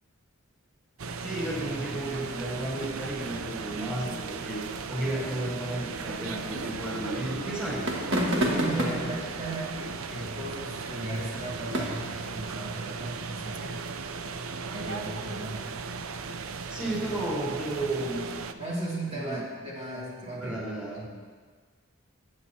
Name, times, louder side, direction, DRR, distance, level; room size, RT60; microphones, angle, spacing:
sound 1, 1.0-18.5, right 4 dB, 80° right, 0.6 m, -37 dB
voice 1, 1.2-4.6 4.9-7.8 8.5-9.2 16.7-18.2 19.1-19.4 20.3-21.0, right 1 dB, 5° right, -7 dB, 4.2 m, -33 dB
sound 2, 7.8-13.0, equal, 60° right, 1.7 m, -33 dB
voice 2, 8.1-13.8 14.7-15.6 18.5-21.0, right 1 dB, 30° right, -6 dB, 2.6 m, -35 dB
20.5 x 9.2 x 2.9 m, 1.6 s
head